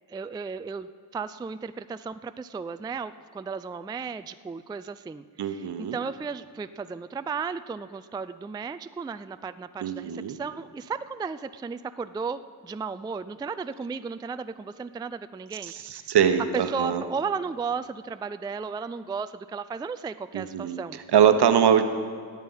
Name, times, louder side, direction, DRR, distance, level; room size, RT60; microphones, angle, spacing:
voice 1, 0.1-15.7 16.0-16.1 16.5-21.0, right 5 dB, 10° right, 11 dB, 0.3 m, -34 dB
voice 2, 5.4-6.0 9.8-10.4 15.6-17.0 20.3-20.8 21.1-21.8, right 8 dB, 65° right, 9 dB, 1.1 m, -22 dB
19.5 x 7.4 x 5.6 m, 2.2 s
cardioid pair, 65°, 43 cm